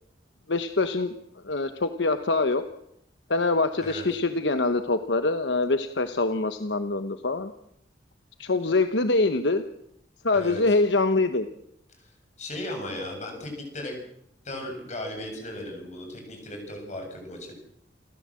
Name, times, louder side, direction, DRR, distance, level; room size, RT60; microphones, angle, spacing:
voice 1, 0.5-1.1 1.4-2.6 3.3-7.5 8.4-9.6 10.2-11.5, left 3 dB, 70° left, 9 dB, 1.0 m, -24 dB
voice 2, 10.3-10.8 12.0-13.9 14.4-17.5, left 1 dB, 40° left, 3 dB, 7.3 m, -36 dB
29.0 x 14.0 x 7.6 m, 0.76 s
head